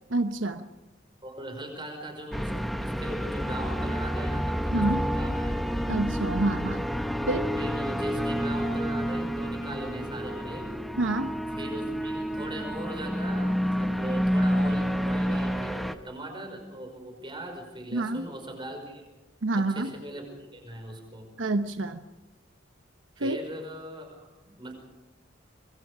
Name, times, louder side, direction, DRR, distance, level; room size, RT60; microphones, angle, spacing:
voice 1, 0.1-0.7 4.7-5.0 5.9-6.8 7.3-7.5 11.0-11.3 17.9-18.2 19.4-19.9 21.4-22.0 23.2-23.4, right 2 dB, 85° right, 8 dB, 1.0 m, -27 dB
voice 2, 1.2-6.0 7.6-10.8 11.5-19.0 19.5-21.3 23.2-24.7, right 1 dB, 25° right, 4 dB, 5.5 m, -40 dB
sound 1, 2.3-15.9, equal, ahead, 0.8 m, -29 dB
26.5 x 22.0 x 5.0 m, 1.1 s
head